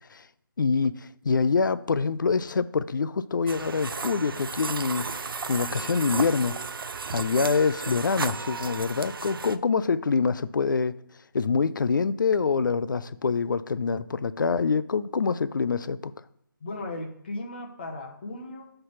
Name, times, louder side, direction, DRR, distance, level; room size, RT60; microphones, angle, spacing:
voice 1, 0.6-5.1 5.5-6.6 7.1-10.9 11.3-16.1, left 5 dB, 60° left, 0.4 m, -25 dB
sound 1, 3.5-9.6, right 5 dB, 75° right, 0.4 m, -34 dB
voice 2, 16.6-18.7, left 2 dB, 25° left, 0.8 m, -36 dB
5.6 x 3.3 x 5.6 m
figure-of-eight pair, 170°, 12 cm